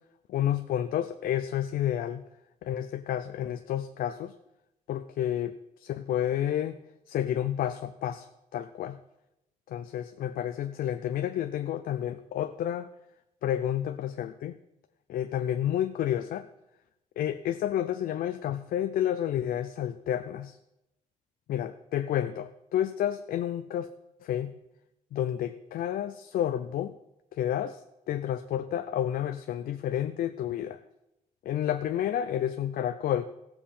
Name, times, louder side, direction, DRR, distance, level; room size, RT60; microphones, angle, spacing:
voice 1, 0.3-2.2 2.6-4.3 4.9-6.8 7.1-9.0 9.7-12.9 13.4-14.6 15.1-16.5 17.2-20.6 21.5-23.9 24.2-24.5 25.1-27.0 27.3-27.8 28.1-30.8 31.4-33.2, left 11 dB, 80° left, 9 dB, 0.5 m, -30 dB
16.0 x 7.4 x 4.3 m, 0.89 s
cardioid pair, 100°, 15 cm